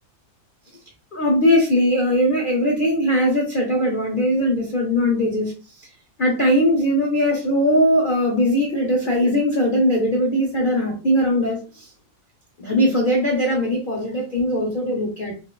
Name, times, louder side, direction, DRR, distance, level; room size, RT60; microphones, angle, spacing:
voice 1, 1.1-5.5 5.8-5.9 6.2-11.9 12.6-15.3, equal, 75° left, -2 dB, 0.4 m, -20 dB
4.1 x 2.2 x 2.3 m, 0.34 s
omnidirectional pair, 2.0 m